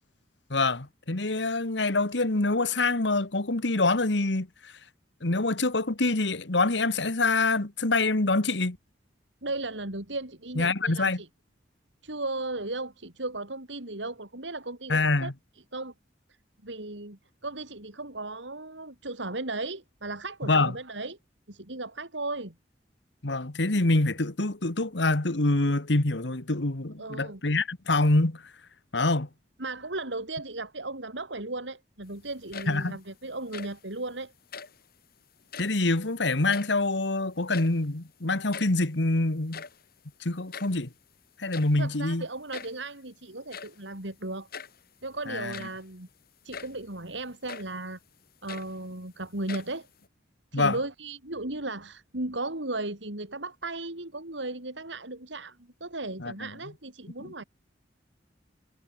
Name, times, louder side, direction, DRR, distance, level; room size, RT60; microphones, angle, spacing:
voice 1, 0.5-4.7 5.2-8.8 10.6-11.2 14.9-15.3 20.5-20.7 23.2-28.4 28.9-29.3 32.7-32.9 35.6-39.6 40.2-40.9 41.4-42.3 45.3-45.5 50.5-50.8 56.2-56.5 57.2-57.4, left 2 dB, 70° left, 1.7 m, -26 dB
voice 2, 9.4-11.3 12.0-15.3 15.7-15.9 16.6-21.2 21.5-22.5 27.0-27.4 29.6-34.3 41.8-44.5 45.0-46.1 46.4-48.0 48.4-49.9 50.5-57.4, right 2 dB, 80° right, 4.5 m, -36 dB
sound 1, 32.3-33.0 33.3-33.9 34.4-34.9 35.4-35.9 36.2-37.1 37.3-38.0 38.2-38.3 38.5-38.9 39.3-40.9 41.5-41.9 42.5-42.9 43.5-43.8 44.5-44.8 45.3-45.9 46.5-46.8 47.5-47.8 48.2-49.1 49.5-50.1, left 6 dB, 55° left, 3.2 m, -43 dB
head